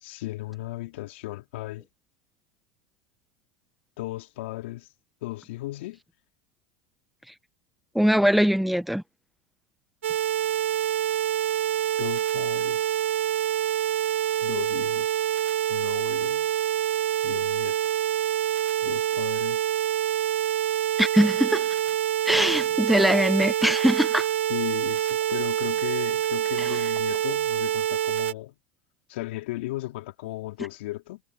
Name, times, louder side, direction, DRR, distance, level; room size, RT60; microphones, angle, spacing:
voice 1, 0.0-1.8 4.0-4.9 5.2-6.0 12.0-12.9 14.4-15.2 15.7-16.5 17.2-17.8 18.8-19.7 24.5-28.5 29.1-31.2, left 18 dB, 70° left, 3.1 m, -36 dB
voice 2, 8.0-9.0 21.0-21.7 22.3-24.3 26.6-26.8, equal, ahead, 1.7 m, -22 dB
sound 1, 10.0-28.3, right 11 dB, 85° right, 2.6 m, -26 dB
hypercardioid pair, 90°, 6 cm